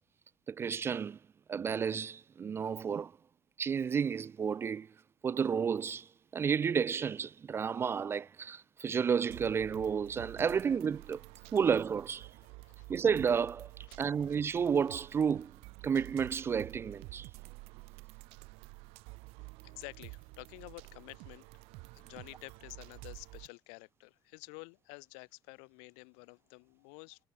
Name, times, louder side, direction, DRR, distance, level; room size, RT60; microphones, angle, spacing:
voice 1, 0.5-1.2 1.5-3.1 3.6-4.9 5.2-6.1 6.3-11.2 11.5-12.3 12.9-13.7 14.0-15.5 15.8-17.3, right 7 dB, 25° right, 0.4 m, -31 dB
sound 1, 9.3-23.5, right 26 dB, 75° right, 1.8 m, -50 dB
voice 2, 19.6-21.6 21.9-27.2, left 40 dB or more, 85° left, 6.5 m, -50 dB
cardioid pair, 140°, 10 cm